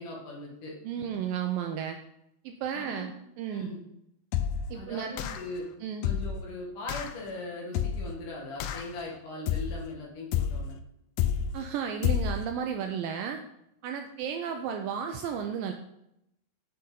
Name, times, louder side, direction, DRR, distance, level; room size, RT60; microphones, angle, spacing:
voice 1, 0.0-1.1 2.7-3.2 3.5-3.8 4.7-5.7 6.0-10.8, left 2 dB, 60° left, -2 dB, 3.1 m, -40 dB
voice 2, 0.8-2.0 2.5-3.1 3.4-3.7 4.7-5.2 5.8-6.1 11.5-13.4 13.8-15.7, right 8 dB, 85° right, 5 dB, 2.1 m, -33 dB
sound 1, 4.3-4.7 5.2-5.6 6.0-6.4 6.9-7.2 7.7-8.2 8.6-9.0 9.5-9.9 10.3-10.7 11.2-11.6 12.0-12.5, left 9 dB, 90° left, 1.9 m, -29 dB
7.8 x 6.8 x 3.8 m, 0.80 s
omnidirectional pair, 4.5 m